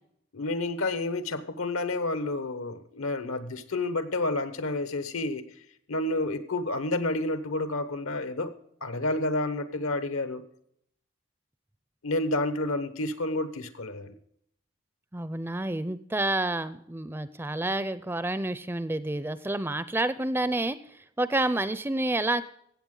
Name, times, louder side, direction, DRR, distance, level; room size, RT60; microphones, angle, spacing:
voice 1, 0.3-5.4 5.9-8.5 8.8-10.4 12.0-14.1, left 2 dB, 85° left, 11 dB, 1.1 m, -30 dB
voice 2, 15.1-22.4, right 2 dB, 10° right, 14 dB, 0.4 m, -29 dB
15.5 x 8.3 x 3.8 m, 0.70 s
head